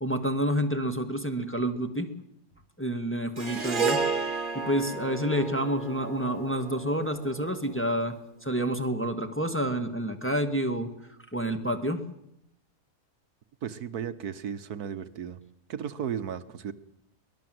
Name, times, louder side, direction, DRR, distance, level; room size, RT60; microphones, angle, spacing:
voice 1, 0.0-2.1 2.8-4.0 4.5-8.1 8.4-10.9 11.3-12.0, equal, 10° left, 5 dB, 1.8 m, -28 dB
Harp, 3.4-7.8, right 4 dB, 30° right, 1.7 m, -32 dB
voice 2, 13.6-15.4 15.7-16.7, right 8 dB, 75° right, 12 dB, 1.6 m, -35 dB
23.5 x 20.0 x 7.8 m, 0.80 s
omnidirectional pair, 1.7 m